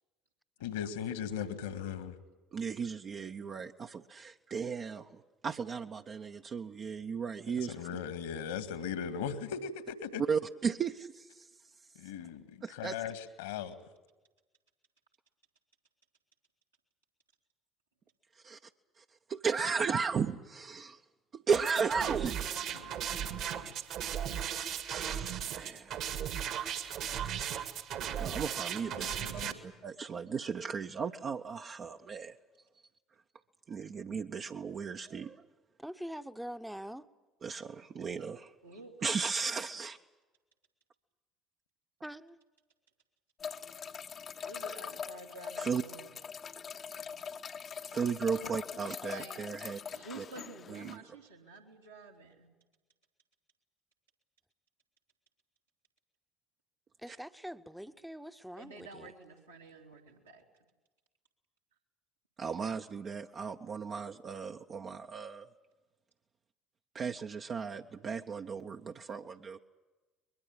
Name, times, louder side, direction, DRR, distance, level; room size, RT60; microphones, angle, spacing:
voice 1, 0.6-2.2 7.7-10.2 12.0-13.8 22.7-23.7 28.9-29.5, left 7 dB, 70° left, 1.9 m, -39 dB
voice 2, 2.5-7.7 10.2-11.5 12.6-13.0 18.4-18.6 19.0-19.1 19.3-21.0 21.3-22.5 24.9-26.0 28.2-32.4 33.7-35.4 37.4-38.5 39.0-40.0 45.6-45.8 47.9-49.8 50.2-50.3 50.7-51.0 57.1-57.2 62.4-65.5 66.9-69.6, right 5 dB, 35° right, 0.8 m, -35 dB
sound 1, 21.5-29.5, right 9 dB, 55° right, 1.9 m, -36 dB
voice 3, 35.8-37.1 42.0-42.4 57.0-59.1, equal, 5° right, 1.0 m, -44 dB
voice 4, 38.6-39.1 44.4-46.2 47.1-47.5 48.7-52.5 58.6-60.4, right 3 dB, 80° right, 3.2 m, -50 dB
sound 2, 43.4-51.0, left 6 dB, 35° left, 0.9 m, -43 dB
22.5 x 22.0 x 8.9 m
figure-of-eight pair, 60°, 0 cm